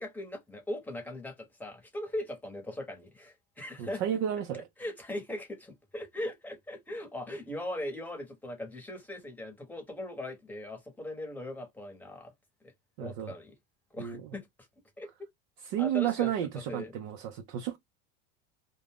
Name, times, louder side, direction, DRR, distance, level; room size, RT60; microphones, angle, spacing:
voice 1, 0.0-4.0 4.8-12.3 12.6-12.7 13.0-13.5 13.9-14.5 15.0-15.1 15.8-16.3 16.7-16.9, left 1 dB, 5° left, 0.9 m, -39 dB
voice 2, 3.8-4.7 13.0-13.3 14.0-14.3 15.7-17.8, right 10 dB, 60° right, 0.6 m, -32 dB
2.5 x 2.2 x 3.4 m
supercardioid pair, 135°, 29 cm